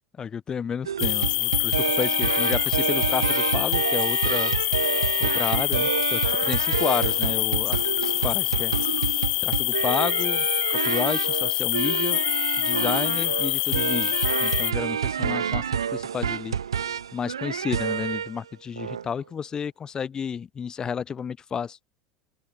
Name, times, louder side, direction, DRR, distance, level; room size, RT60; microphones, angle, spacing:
voice 1, 0.2-4.5 5.2-8.8 9.4-10.5 10.8-12.2 12.6-16.6 17.1-21.8, left 7 dB, 30° left, 6.9 m, -31 dB
sound 1, 0.8-18.4 18.8-19.0, right 8 dB, 80° right, 3.8 m, -28 dB
sound 2, 1.0-14.7, left 22 dB, 55° left, 1.4 m, -25 dB
hypercardioid pair, 80°, 3 cm